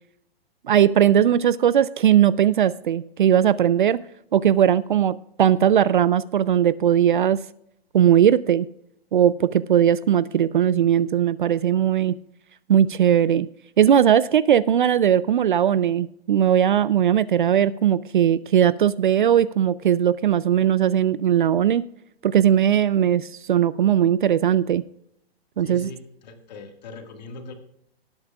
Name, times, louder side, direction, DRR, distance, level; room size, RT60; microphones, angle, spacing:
voice 1, 0.7-4.0 4.3-7.4 7.9-8.7 9.1-12.2 12.7-13.5 13.8-21.9 22.2-24.8 25.6-25.9, right 9 dB, 50° right, 18 dB, 0.4 m, -19 dB
voice 2, 25.6-27.5, left 3 dB, 40° left, 5 dB, 1.9 m, -40 dB
19.0 x 8.6 x 2.4 m, 0.75 s
hypercardioid pair, 165°, 31 cm